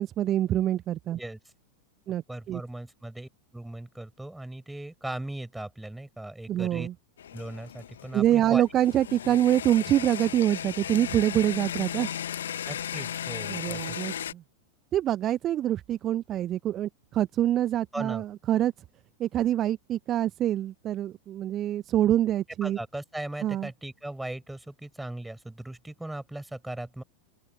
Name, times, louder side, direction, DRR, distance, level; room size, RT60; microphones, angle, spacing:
voice 1, 0.0-1.2 2.1-2.6 6.5-6.9 8.1-12.1 13.5-14.4 14.9-18.7 19.2-22.8 23.4-23.7, right 12 dB, 30° right, 1.0 m, -25 dB
voice 2, 2.3-6.9 7.3-8.6 12.7-14.0 17.9-18.2 22.6-27.0, right 1 dB, 5° right, 5.5 m, -38 dB
sound 1, 7.2-14.3, left 9 dB, 65° left, 1.1 m, -36 dB
open air
figure-of-eight pair, 90°, 0 cm